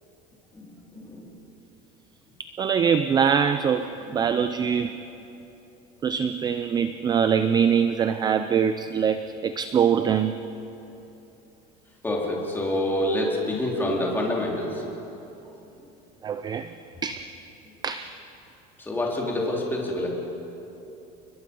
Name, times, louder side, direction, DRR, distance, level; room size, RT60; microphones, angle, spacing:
voice 1, 0.5-1.3 4.1-4.2 4.6-4.7 12.0-14.8 18.8-20.1, left 1 dB, 10° left, -2 dB, 3.8 m, -27 dB
voice 2, 2.4-4.9 6.0-10.3 16.2-16.7 17.0-17.2 17.8-18.1, right 7 dB, 20° right, 11 dB, 0.5 m, -23 dB
29.5 x 21.5 x 5.4 m, 3.0 s
cardioid pair, 160°, 20 cm